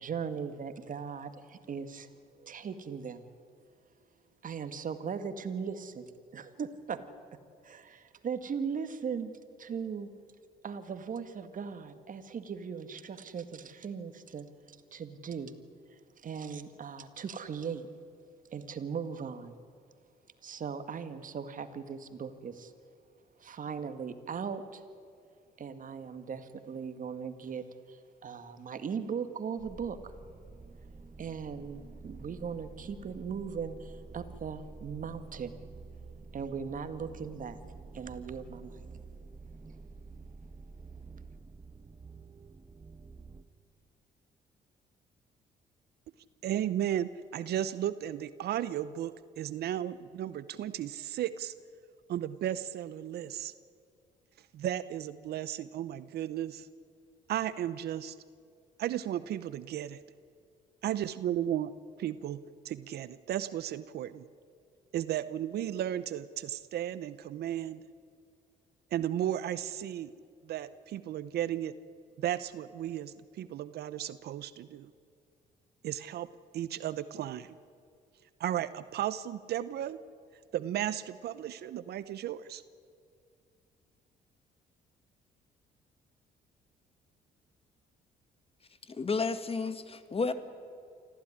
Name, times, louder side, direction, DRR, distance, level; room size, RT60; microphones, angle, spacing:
voice 1, 0.0-2.1 2.4-3.2 4.4-7.0 7.6-10.1 10.6-15.5 15.9-17.9 18.5-19.6 20.4-22.7 23.4-24.8 25.6-30.1 31.2-35.5 36.3-37.6 37.9-38.8, right 6 dB, 50° right, 10 dB, 1.9 m, -39 dB
sound 1, 29.6-43.4, right 3 dB, 25° right, 1.3 m, -49 dB
voice 2, 46.4-51.5 52.1-53.5 54.5-56.7 57.3-58.1 58.8-60.0 60.8-61.7 62.0-64.2 64.9-67.8 68.9-70.1 70.4-71.7 72.2-74.9 75.8-76.3 76.5-77.6 78.4-80.0 80.5-82.6, right 11 dB, 70° right, 15 dB, 0.8 m, -34 dB
voice 3, 88.9-90.3, left 4 dB, 35° left, 11 dB, 1.9 m, -31 dB
25.0 x 15.5 x 9.9 m, 2.3 s
supercardioid pair, 70°, 17 cm